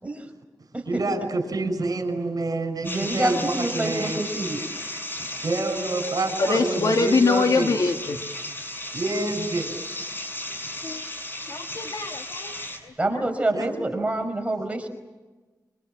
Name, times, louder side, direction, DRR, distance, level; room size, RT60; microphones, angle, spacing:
voice 1, 0.8-4.2 5.2-7.8 8.9-9.7 13.5-14.1, right 2 dB, 60° right, 6 dB, 6.3 m, -28 dB
sound 1, 2.8-12.8, left 1 dB, 30° left, 6.9 m, -34 dB
voice 2, 2.8-4.6 5.2-5.3 13.0-14.9, right 1 dB, 20° right, 4 dB, 5.3 m, -27 dB
voice 3, 6.4-8.2 10.8-11.0 11.5-12.5 12.8-12.9, left 4 dB, 55° left, 5 dB, 1.9 m, -23 dB
26.5 x 26.0 x 7.5 m, 1.2 s
wide cardioid pair, 80°, 7 cm